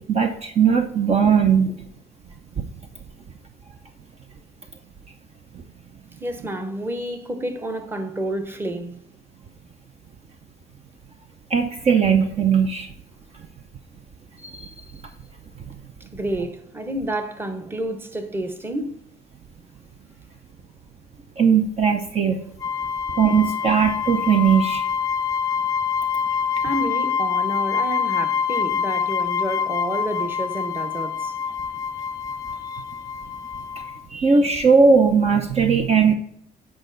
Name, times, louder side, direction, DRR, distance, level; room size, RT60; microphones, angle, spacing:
voice 1, 0.0-1.8 2.6-2.7 11.5-12.9 14.4-14.7 21.4-22.4 23.2-24.8 34.1-36.1, right 6 dB, 40° right, 0.7 m, -18 dB
voice 2, 6.2-8.9 16.1-19.0 26.6-31.3 32.6-32.8, right 1 dB, 15° right, 0.9 m, -29 dB
sound 1, 22.6-34.0, left 7 dB, 20° left, 0.4 m, -26 dB
8.8 x 5.0 x 3.9 m
cardioid pair, 110°, 17 cm